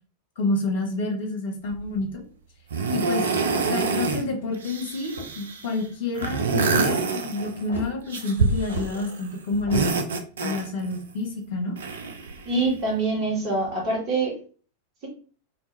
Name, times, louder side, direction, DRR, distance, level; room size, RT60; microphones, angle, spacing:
voice 1, 0.4-2.2 2.9-3.3 3.7-10.0 10.4-11.8, left 2 dB, 50° left, 0 dB, 0.9 m, -29 dB
sound 1, 1.7-2.0 2.7-4.2 4.5-5.7 6.2-7.7 8.1-9.2 9.5-11.0 11.8-12.8 13.7-13.8, right 4 dB, 65° right, 0.4 m, -26 dB
sound 2, 4.1-4.5 5.0-5.5 6.1-6.6 7.7-7.9 8.7-8.9 9.7-9.9, left 1 dB, 80° right, 0.9 m, -36 dB
voice 2, 12.4-14.4, right 3 dB, 35° right, -3 dB, 1.5 m, -25 dB
2.7 x 2.2 x 3.1 m, 0.41 s
figure-of-eight pair, 90°, 0 cm